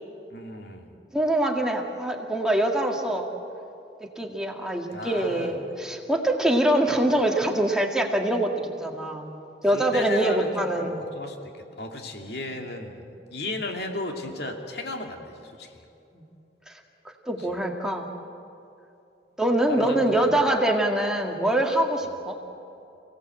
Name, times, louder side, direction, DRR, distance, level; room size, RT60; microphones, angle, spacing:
voice 1, 0.3-0.9 4.9-5.5 9.7-11.4 11.8-15.8 19.6-20.3, left 2 dB, 60° left, 3 dB, 2.6 m, -35 dB
voice 2, 1.1-3.3 4.2-9.3 9.6-11.0 16.1-16.2 16.7-16.8 17.3-18.1 19.4-22.4, right 1 dB, 5° right, 0 dB, 2.1 m, -24 dB
29.5 x 17.5 x 7.9 m, 2.8 s
head